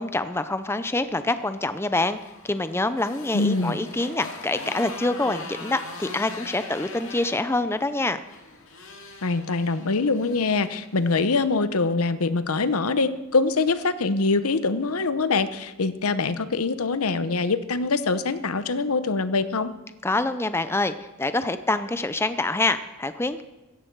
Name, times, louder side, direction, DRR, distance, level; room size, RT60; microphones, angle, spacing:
voice 1, 0.0-2.2 2.4-8.2 20.0-23.4, left 2 dB, 10° left, 11 dB, 0.5 m, -26 dB
Motorcycle, 1.9-11.3, left 3 dB, 65° left, 2.5 m, -41 dB
voice 2, 3.3-3.8 9.2-19.7, left 3 dB, 85° left, 13 dB, 0.8 m, -24 dB
16.5 x 14.0 x 4.7 m, 1.1 s
head